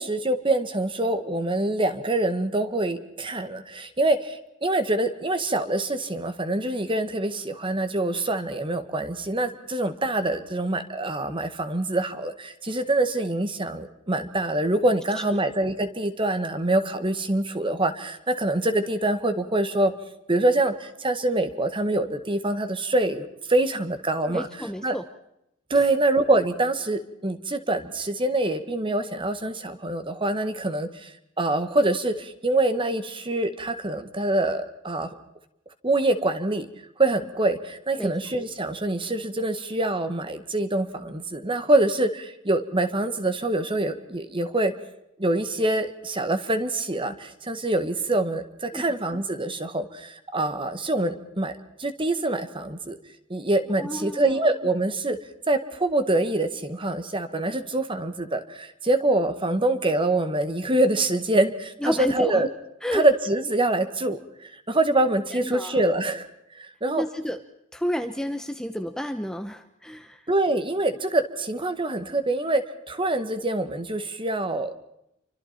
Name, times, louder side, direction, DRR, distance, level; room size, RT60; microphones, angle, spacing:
voice 1, 0.0-19.9 20.3-24.5 24.8-25.0 25.7-31.1 31.4-35.1 35.8-36.7 37.0-44.7 45.2-51.5 51.8-53.0 53.3-55.2 55.5-62.5 62.9-66.3 66.5-67.0 70.3-74.7, right 2 dB, 25° right, 9 dB, 1.7 m, -25 dB
voice 2, 24.3-25.0 38.0-38.1 48.7-48.8 53.8-54.4 61.8-62.4 62.8-63.0 65.4-65.8 67.0-67.4 67.7-70.2, equal, 5° left, 7 dB, 0.9 m, -30 dB
29.5 x 24.5 x 4.4 m, 0.81 s
head